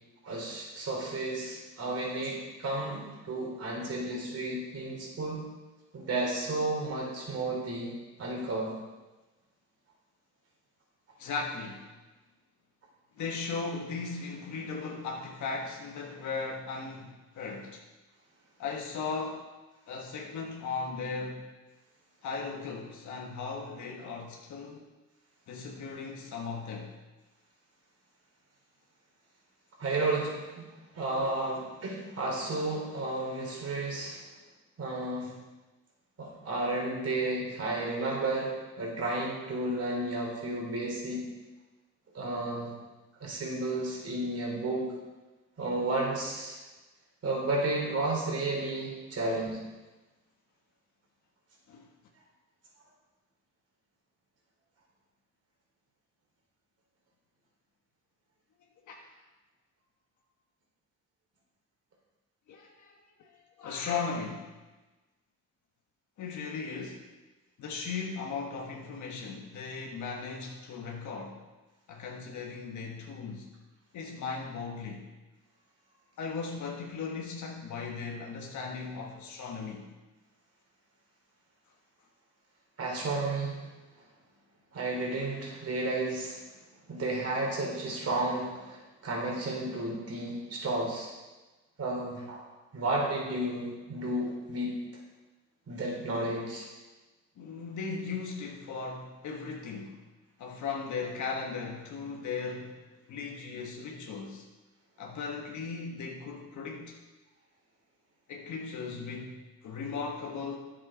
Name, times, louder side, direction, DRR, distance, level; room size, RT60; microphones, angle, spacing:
voice 1, 0.2-5.4 5.9-7.9 8.2-8.7 29.8-30.6 30.9-34.2 34.8-35.3 36.2-38.5 38.8-41.3 42.1-42.7 43.2-44.9 45.6-46.6 47.2-49.6 82.8-83.6 84.7-86.4 86.9-91.1 91.8-92.4 92.7-94.8 95.7-96.7, right 2 dB, 55° right, -2 dB, 3.8 m, -32 dB
voice 2, 11.2-11.9 13.2-17.8 18.6-19.5 19.9-21.5 22.2-24.8 25.5-27.0 51.7-51.9 58.9-59.1 62.5-62.9 63.2-63.3 63.6-64.5 66.2-67.1 67.6-71.4 71.9-73.5 73.9-75.1 76.2-79.9 97.4-100.0 100.4-102.8 103.1-104.5 105.0-107.0 108.3-110.6, left 4 dB, 70° left, 0 dB, 1.5 m, -37 dB
10.5 x 7.6 x 5.0 m, 1.2 s
cardioid pair, 90°, 30 cm